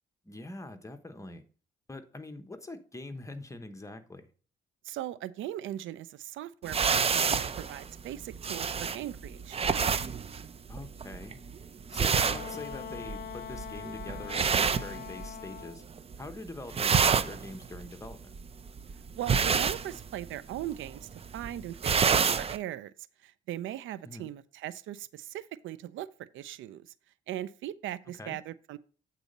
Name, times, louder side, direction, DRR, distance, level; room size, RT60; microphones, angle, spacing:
voice 1, 0.2-1.4 1.9-4.3 10.7-11.4 11.9-15.8 16.2-18.3 24.0-24.3 28.2-28.4, left 2 dB, 15° left, 1.0 m, -44 dB
voice 2, 4.8-9.6 19.2-21.8 22.1-22.9 23.2-26.8 27.3-28.8, right 12 dB, 80° right, 0.5 m, -39 dB
sound 1, 6.7-15.6 15.9-16.3 16.6-22.6, right 6 dB, 30° right, 0.5 m, -29 dB
Wind instrument woodwind instrument, 12.1-15.8, left 9 dB, 45° left, 0.7 m, -42 dB
8.2 x 4.1 x 5.3 m
cardioid pair, 90°, 20 cm